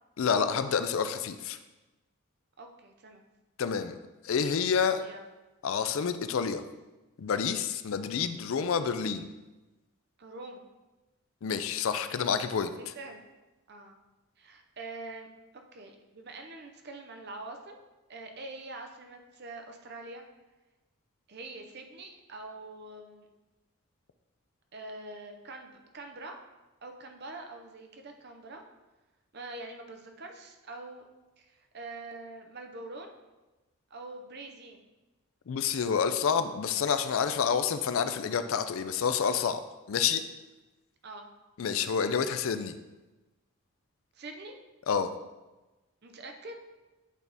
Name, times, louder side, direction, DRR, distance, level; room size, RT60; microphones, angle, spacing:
voice 1, 0.2-1.6 3.6-4.0 4.2-5.0 5.6-6.6 7.2-9.3 11.4-12.7 35.5-39.6 39.9-40.2 41.6-42.8 44.9-45.1, left 6 dB, 65° left, 10 dB, 0.4 m, -28 dB
voice 2, 2.6-3.2 5.0-5.2 10.2-10.6 12.8-13.2 13.7-14.0 14.4-15.3 15.7-17.8 18.1-20.2 21.3-23.3 24.7-26.4 26.8-28.6 29.3-31.1 31.4-33.1 33.9-34.8 41.0-41.3 44.1-44.6 46.0-46.6, right 2 dB, 45° right, 4 dB, 0.7 m, -44 dB
8.2 x 3.5 x 4.0 m, 1.1 s
head